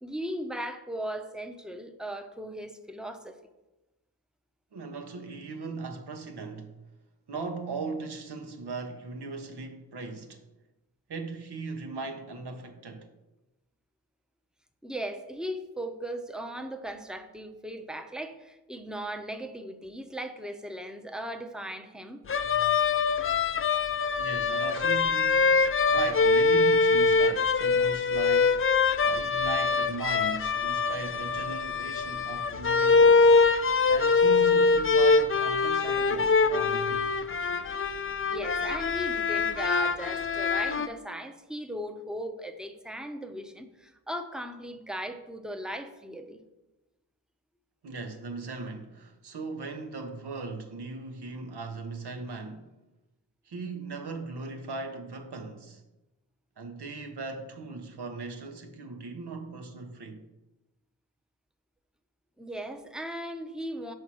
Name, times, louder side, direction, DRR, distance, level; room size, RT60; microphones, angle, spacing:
voice 1, 0.0-3.4 14.8-22.2 38.3-46.4 62.4-63.9, equal, ahead, 0.7 m, -37 dB
voice 2, 4.7-6.7 7.3-10.4 11.1-13.1 24.2-28.7 29.0-33.4 33.9-37.1 47.8-52.7 53.4-55.8 56.6-60.2, right 3 dB, 80° right, 0.9 m, -38 dB
sound 1, 22.3-40.9, left 4 dB, 35° left, 0.4 m, -24 dB
5.6 x 4.4 x 6.2 m
cardioid pair, 45°, 39 cm